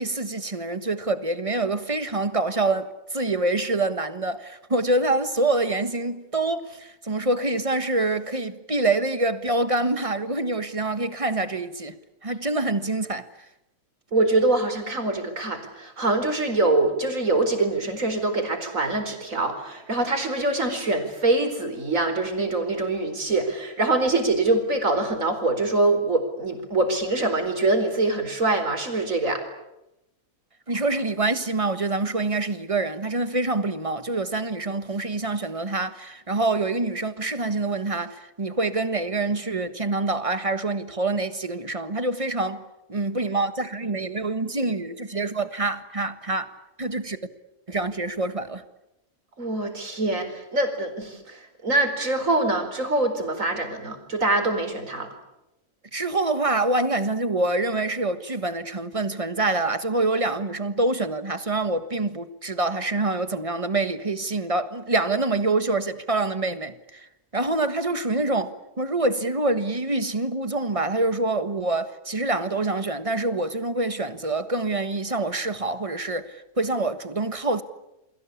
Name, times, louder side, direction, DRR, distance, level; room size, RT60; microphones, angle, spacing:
voice 1, 0.0-13.3 30.7-42.6 42.9-46.5 46.8-47.2 47.7-48.6 55.9-77.6, right 2 dB, 20° right, 1.4 m, -26 dB
voice 2, 14.1-29.4 49.4-55.1, right 2 dB, 55° right, 4.8 m, -24 dB
29.0 x 22.5 x 8.6 m
omnidirectional pair, 1.6 m